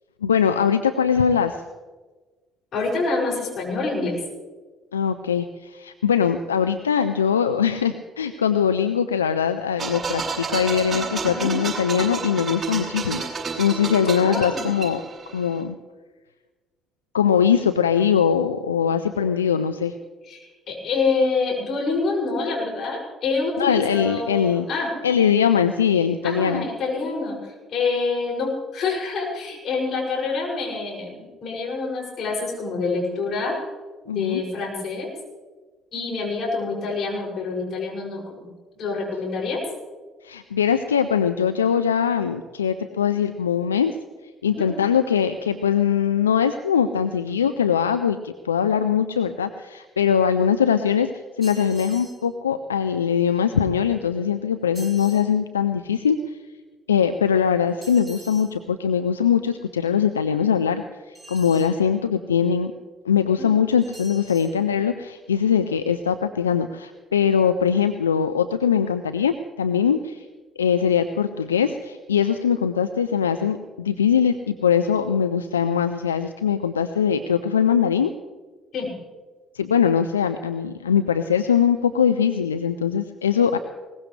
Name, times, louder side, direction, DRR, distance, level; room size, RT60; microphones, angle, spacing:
voice 1, 0.2-1.6 4.9-13.2 13.6-15.0 15.3-15.8 17.1-19.9 23.6-24.7 25.0-26.6 34.1-34.4 40.2-44.0 44.4-51.1 51.4-56.4 56.9-62.7 63.0-70.2 70.6-78.1 79.5-83.6, left 7 dB, 90° left, 9 dB, 0.5 m, -21 dB
voice 2, 2.7-4.2 11.3-11.5 14.2-14.6 20.2-24.9 26.2-33.5 34.0-35.1 35.9-38.5 38.8-39.6 44.4-44.7 63.4-63.5 78.7-78.9, left 4 dB, 55° left, -2 dB, 6.6 m, -26 dB
sound 1, 9.8-15.5, right 4 dB, 35° right, 7.2 m, -30 dB
sound 2, 51.4-52.2 54.7-55.3 57.8-58.5 61.1-61.8 63.8-64.5, right 2 dB, 10° right, 6.7 m, -44 dB
21.5 x 19.5 x 3.3 m, 1.3 s
hypercardioid pair, 50°, 0 cm